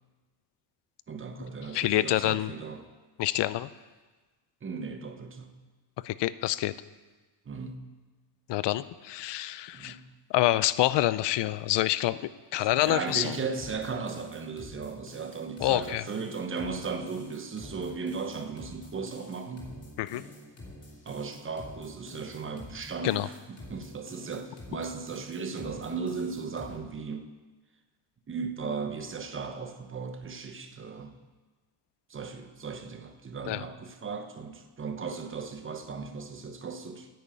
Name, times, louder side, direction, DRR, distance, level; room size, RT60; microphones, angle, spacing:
voice 1, 1.1-2.9 4.6-5.5 7.5-8.0 9.7-10.1 12.6-19.8 21.0-27.3 28.3-31.2 32.1-37.1, right 5 dB, 25° right, 6 dB, 1.1 m, -36 dB
voice 2, 1.7-2.5 3.2-3.7 6.0-6.7 8.5-10.0 10.3-12.2 12.5-13.3 15.6-16.0 20.0-20.2 23.0-23.3 33.5-33.6, left 15 dB, 60° left, 17 dB, 0.6 m, -27 dB
sound 1, 12.7-26.8, left 1 dB, 30° left, 3.0 m, -47 dB
10.0 x 9.4 x 8.5 m, 1.3 s
cardioid pair, 145°, 47 cm